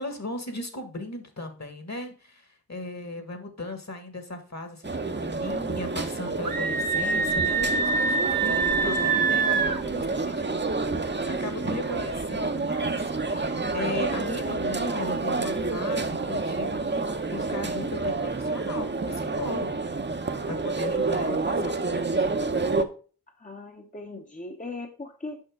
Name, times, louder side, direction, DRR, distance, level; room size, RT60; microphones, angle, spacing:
voice 1, 0.0-10.9 11.2-19.8 20.2-22.3, left 2 dB, 45° left, 1.6 m, -37 dB
sound 1, 4.8-22.8, right 3 dB, 30° right, 0.7 m, -29 dB
Screaming, 6.4-9.8, right 4 dB, 65° right, 0.9 m, -25 dB
voice 2, 23.4-25.4, left 2 dB, 20° left, 0.8 m, -39 dB
6.5 x 5.6 x 3.7 m
wide cardioid pair, 50°, 37 cm